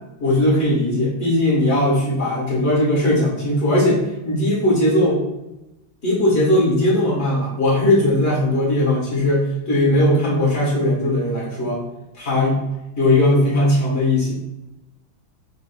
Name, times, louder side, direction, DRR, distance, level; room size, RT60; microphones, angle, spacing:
voice 1, 0.2-5.2 6.0-11.8 12.1-12.6 13.0-14.3, left 1 dB, 35° left, -5 dB, 1.4 m, -18 dB
4.7 x 3.7 x 2.3 m, 0.95 s
omnidirectional pair, 2.2 m